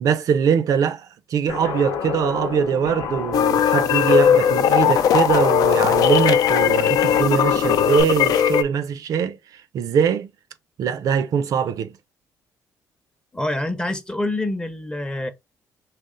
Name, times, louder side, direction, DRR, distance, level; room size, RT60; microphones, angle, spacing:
voice 1, 0.0-10.3 10.8-11.9, right 7 dB, 65° right, 0.4 m, -22 dB
Guitar, 1.5-8.0, left 6 dB, 85° left, 1.0 m, -31 dB
sound 1, 3.3-8.6, left 9 dB, 70° left, 0.4 m, -18 dB
voice 2, 13.3-15.3, left 1 dB, 15° left, 0.7 m, -26 dB
4.0 x 2.0 x 3.7 m
cardioid pair, 120°, 7 cm